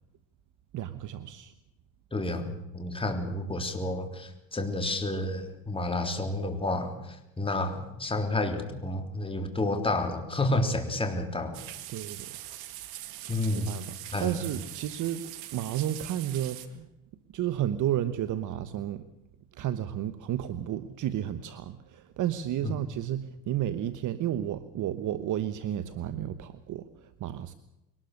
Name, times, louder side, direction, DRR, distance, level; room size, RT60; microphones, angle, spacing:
voice 1, 0.7-1.5 11.9-12.5 13.5-15.2 15.5-16.9 17.3-19.1 19.5-27.5, right 11 dB, 55° right, 13 dB, 1.1 m, -32 dB
voice 2, 2.1-6.9 7.4-11.6 13.3-13.7 14.1-14.4 22.6-22.7, left 2 dB, 15° left, 5 dB, 3.4 m, -30 dB
sound 1, 11.5-16.7, right 14 dB, 75° right, 1.9 m, -42 dB
23.0 x 19.0 x 6.6 m, 0.91 s
supercardioid pair, 95°, 38 cm